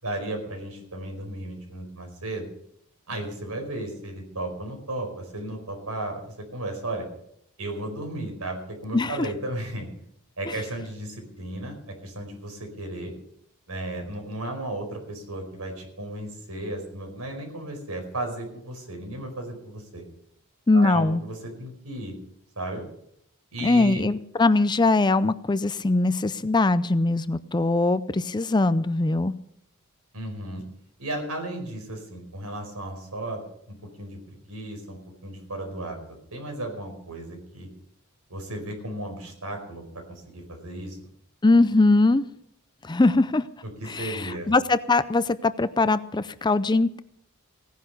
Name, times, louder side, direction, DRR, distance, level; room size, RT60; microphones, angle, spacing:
voice 1, 0.0-2.5 3.1-7.1 7.6-9.9 10.4-13.1 13.7-20.0 20.7-22.2 22.6-22.8 23.5-24.0 30.1-30.6 31.0-33.4 34.0-36.0 36.3-37.7 38.3-41.0 43.6-44.5, right 1 dB, 80° right, 4 dB, 4.9 m, -34 dB
voice 2, 8.9-9.3 20.7-21.2 23.6-29.3 41.4-42.2 42.8-43.5 43.9-47.0, left 2 dB, 20° left, 14 dB, 0.5 m, -21 dB
17.0 x 10.5 x 6.6 m, 0.72 s
head